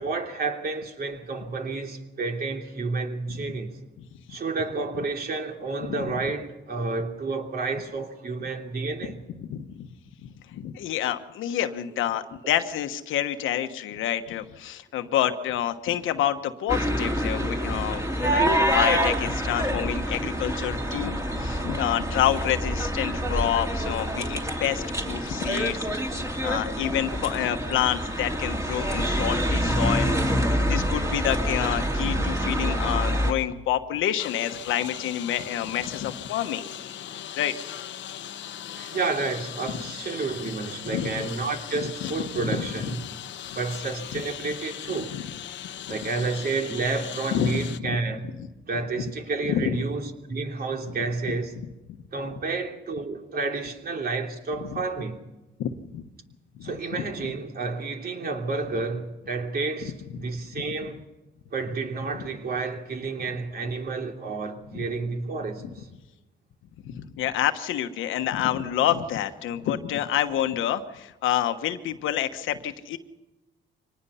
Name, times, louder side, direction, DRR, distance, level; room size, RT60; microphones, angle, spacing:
voice 1, 0.0-3.8 4.3-9.2 38.8-43.0 43.5-45.1 45.9-48.3 48.7-51.5 52.1-55.2 56.6-61.0 61.5-65.9, right 3 dB, 50° right, 3.0 m, -30 dB
voice 2, 9.4-9.9 10.2-25.9 26.4-30.2 30.6-36.7 37.3-37.5 40.9-41.1 42.0-42.9 44.1-44.2 45.1-45.2 47.3-48.0 48.2-48.5 49.5-49.8 51.3-51.4 51.9-52.0 54.6-54.8 55.6-56.1 56.5-57.0 59.8-59.9 64.7-64.8 66.8-73.0, left 11 dB, 85° left, 1.2 m, -28 dB
sound 1, 16.7-33.3, equal, 15° right, 2.8 m, -26 dB
Engine, 34.2-47.8, left 11 dB, 70° left, 1.0 m, -39 dB
24.5 x 19.5 x 5.7 m
cardioid pair, 90°, 20 cm